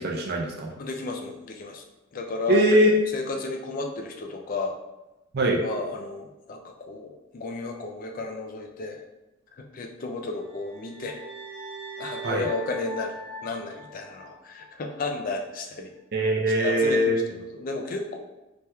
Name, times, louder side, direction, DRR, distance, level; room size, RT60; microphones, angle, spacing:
voice 1, 0.0-0.7 2.5-2.9 5.3-5.6 12.2-12.5 16.1-17.2, right 1 dB, 45° right, -1 dB, 0.5 m, -22 dB
voice 2, 0.8-1.8 2.1-2.7 3.1-4.7 5.6-9.0 9.5-11.2 12.0-13.2 13.4-15.9 16.6-18.2, left 3 dB, 40° left, 3 dB, 0.3 m, -33 dB
sound 1, 10.4-14.7, right 1 dB, 5° right, 0.7 m, -41 dB
3.3 x 2.8 x 2.2 m, 1.0 s
head